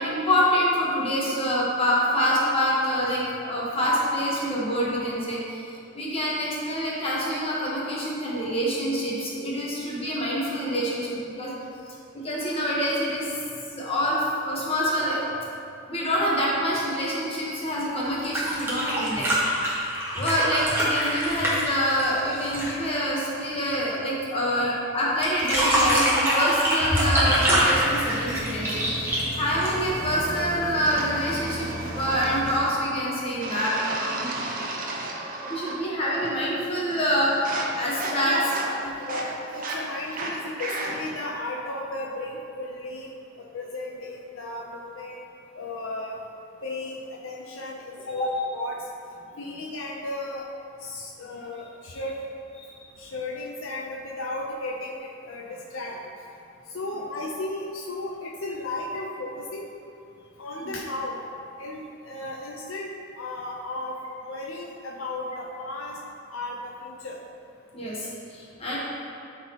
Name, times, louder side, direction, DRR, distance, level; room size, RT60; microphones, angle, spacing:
voice 1, 0.0-5.6 5.9-11.5 12.2-13.3 13.7-15.3 15.9-19.3 20.1-29.0 29.4-31.7 31.9-34.3 35.5-38.4 48.2-48.3 60.6-60.7 67.7-68.8, equal, 30° left, -6 dB, 1.1 m, -26 dB
sound 1, 18.1-22.8 25.2-30.1 31.5-31.6, equal, 10° right, 1.2 m, -24 dB
sound 2, 27.2-32.6, right 1 dB, 85° right, 1.1 m, -35 dB
sound 3, 30.8-32.9 33.4-35.9 36.1-36.6 36.9-41.2, right 2 dB, 45° right, 0.7 m, -34 dB
voice 2, 39.0-43.1 43.4-45.2 45.5-46.2 46.6-48.8 49.4-50.5 50.8-52.2 53.0-56.0 56.7-59.7 60.4-61.2 61.6-62.9 63.2-66.0 66.3-67.2 68.7-68.8, left 2 dB, 85° left, -2 dB, 0.6 m, -34 dB
11.0 x 4.1 x 2.9 m, 2.6 s
head